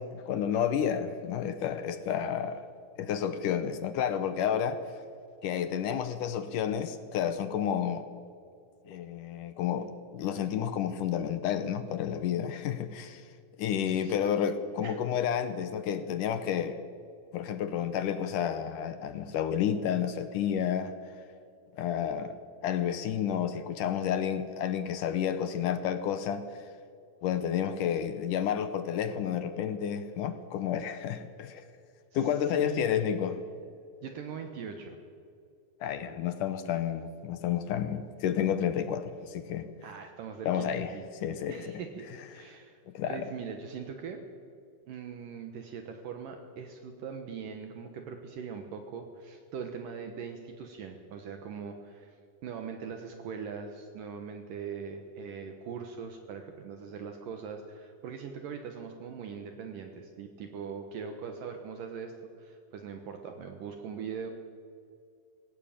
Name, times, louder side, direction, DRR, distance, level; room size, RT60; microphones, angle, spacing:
voice 1, 0.0-2.6 3.0-4.8 5.4-8.1 8.9-13.2 13.6-16.8 17.3-20.9 21.8-22.3 22.6-26.4 27.2-31.7 32.1-33.4 35.8-39.7 40.5-40.9 41.2-41.7 42.9-43.3, left 9 dB, 70° left, 11 dB, 2.2 m, -30 dB
voice 2, 13.8-14.4 14.8-15.0 32.1-33.1 34.0-35.0 39.8-41.0 41.5-42.1 42.3-42.8 43.1-44.2 44.9-52.2 52.4-62.1 62.4-64.3, right 6 dB, 70° right, 5 dB, 2.7 m, -41 dB
19.5 x 16.5 x 8.9 m, 2.4 s
omnidirectional pair, 4.3 m